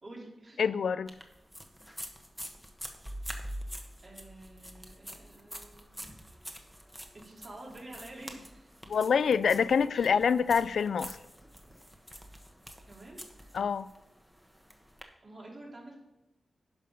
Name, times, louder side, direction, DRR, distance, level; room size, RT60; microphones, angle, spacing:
voice 1, 0.0-0.6 4.0-6.0 7.1-8.7 9.9-10.1 12.9-13.2 15.2-15.9, right 1 dB, 45° right, 3.4 m, -48 dB
voice 2, 0.6-1.1 8.9-11.2 13.5-13.9, left 6 dB, 85° left, 0.3 m, -26 dB
sound 1, 1.1-15.0, equal, 5° right, 1.2 m, -46 dB
11.0 x 5.4 x 5.3 m
cardioid pair, 75°, 0 cm